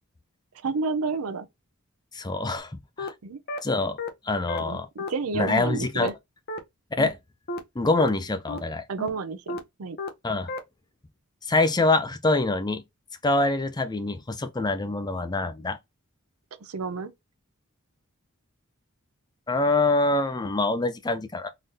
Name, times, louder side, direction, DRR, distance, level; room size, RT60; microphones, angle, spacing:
voice 1, 0.6-1.5 3.2-3.4 4.6-6.1 8.9-10.0 16.6-17.1, right 4 dB, 75° right, 0.6 m, -30 dB
voice 2, 2.1-2.7 3.0-3.1 3.6-4.0 4.2-4.9 5.3-6.1 7.0-7.2 7.8-8.8 10.2-10.5 11.5-12.8 13.2-15.8 19.5-21.5, left 2 dB, 20° left, 0.5 m, -25 dB
sound 1, 2.6-2.7 3.0-3.1 3.5-3.6 4.0-4.1 4.5-4.6 5.0-5.1 5.5-5.6 6.0-6.1 6.5-6.6 7.0-7.1 7.5-7.6 8.0-8.1 8.5-8.6 9.0-9.1 9.5-9.6 10.0-10.1 10.5-10.6, left 2 dB, 45° left, 0.8 m, -31 dB
3.9 x 2.6 x 3.2 m
head